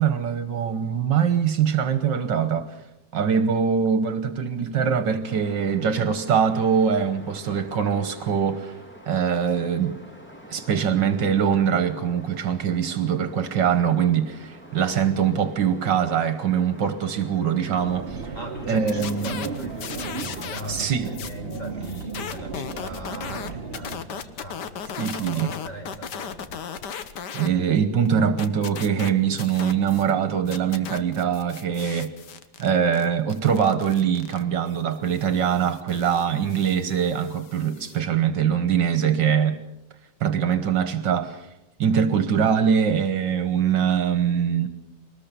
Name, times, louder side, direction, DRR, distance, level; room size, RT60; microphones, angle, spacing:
voice 1, 0.0-2.7 3.1-8.8 9.1-10.0 10.5-18.3 18.7-19.4 20.7-21.1 25.0-25.5 27.3-32.1 32.6-39.6 40.2-41.5 41.8-44.7, right 7 dB, 70° right, 10 dB, 1.8 m, -23 dB
sound 1, 5.2-20.5, equal, 5° left, 2.4 m, -46 dB
sound 2, 17.8-24.0, right 4 dB, 35° right, 1.3 m, -35 dB
voice 2, 18.3-24.9 25.1-26.7, equal, 20° left, 1 dB, 5.2 m, -40 dB
sound 3, 18.7-20.8 21.0-27.5 27.8-30.1 30.4-38.0, left 7 dB, 65° left, 1.6 m, -37 dB
22.5 x 19.5 x 6.9 m, 0.93 s
omnidirectional pair, 2.1 m